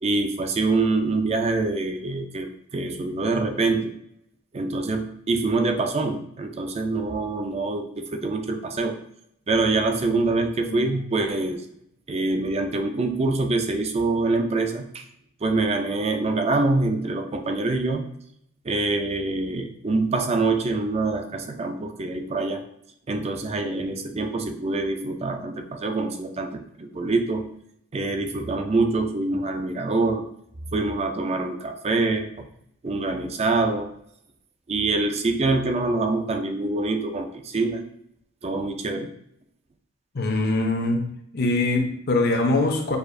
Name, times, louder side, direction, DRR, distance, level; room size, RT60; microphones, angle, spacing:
voice 1, 0.0-3.9 4.5-9.0 9.5-11.6 12.1-15.1 15.4-18.0 18.6-22.6 23.1-27.5 27.9-30.2 30.7-32.5 32.8-33.9 34.7-37.8 38.4-39.1, right 3 dB, 30° right, 6 dB, 0.4 m, -25 dB
voice 2, 40.1-41.0 41.3-43.0, left 2 dB, 50° left, 3 dB, 0.7 m, -23 dB
6.6 x 2.4 x 2.5 m, 0.73 s
head